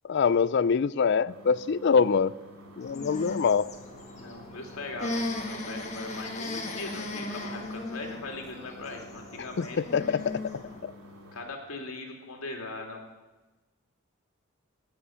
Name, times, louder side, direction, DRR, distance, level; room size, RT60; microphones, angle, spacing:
voice 1, 0.1-2.3 2.8-3.7 9.6-10.4 10.8-10.9, left 6 dB, 55° left, 19 dB, 0.4 m, -24 dB
sound 1, 1.3-11.4, equal, 85° right, 3.8 m, -50 dB
sound 2, 2.8-10.8, left 2 dB, 30° left, 1.6 m, -37 dB
voice 2, 4.1-10.2 11.3-13.0, left 2 dB, 85° left, 2 dB, 2.9 m, -40 dB
19.0 x 7.0 x 8.7 m, 1.2 s
head